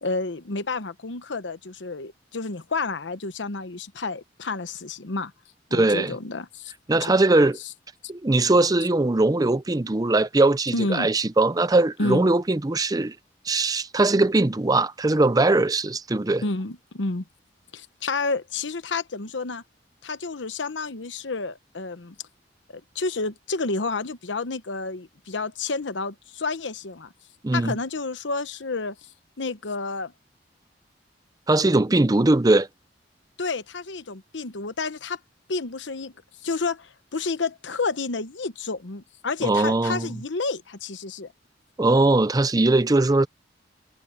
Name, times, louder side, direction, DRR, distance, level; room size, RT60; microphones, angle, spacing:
voice 1, 0.0-5.3 5.7-6.7 10.7-11.1 12.0-12.2 16.4-17.2 17.7-19.6 20.0-22.1 22.7-27.1 27.5-29.0 29.4-30.1 33.4-35.2 35.5-36.1 36.4-41.3, left 3 dB, 85° left, 1.0 m, -30 dB
voice 2, 5.7-6.1 6.9-7.6 8.1-13.1 13.5-16.4 27.4-27.8 31.5-32.7 39.4-40.1 41.8-43.3, right 2 dB, 20° right, 0.6 m, -20 dB
head